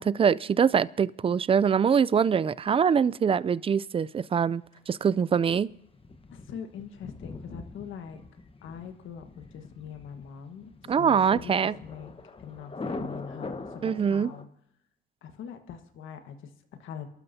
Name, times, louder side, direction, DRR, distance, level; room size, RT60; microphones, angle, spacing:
voice 1, 0.0-5.7 10.9-11.7 13.8-14.3, right 7 dB, 30° right, 0.4 m, -24 dB
Thunder, 5.4-14.4, left 3 dB, 30° left, 1.1 m, -42 dB
voice 2, 6.3-8.2 8.6-12.1 12.4-14.5 15.2-17.1, left 8 dB, 80° left, 1.5 m, -43 dB
28.5 x 12.0 x 2.8 m
cardioid pair, 90°, 20 cm